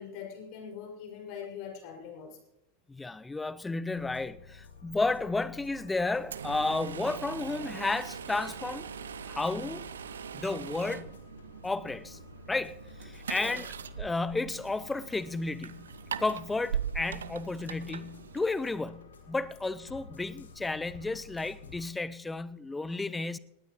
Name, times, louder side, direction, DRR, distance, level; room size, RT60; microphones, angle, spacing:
voice 1, 0.0-2.4 13.3-13.6, left 7 dB, 45° left, 5.5 m, -42 dB
voice 2, 2.9-8.9 9.2-9.9 10.3-11.1 11.6-12.2 12.5-13.7 14.0-15.9 16.2-23.4, left 3 dB, 10° left, 0.6 m, -32 dB
sound 1, 3.9-21.9, left 5 dB, 70° left, 2.4 m, -52 dB
sound 2, 6.2-18.8, right 8 dB, 70° right, 0.7 m, -41 dB
19.5 x 16.5 x 3.0 m
figure-of-eight pair, 90°, 0 cm